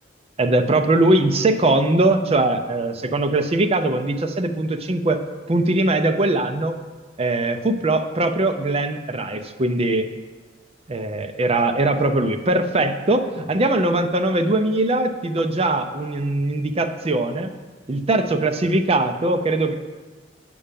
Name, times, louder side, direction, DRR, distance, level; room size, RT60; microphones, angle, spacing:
voice 1, 0.4-5.2 5.5-6.8 7.2-10.1 10.9-17.5 17.9-19.7, right 2 dB, 30° right, 7 dB, 0.5 m, -21 dB
8.5 x 5.5 x 5.2 m, 1.3 s
head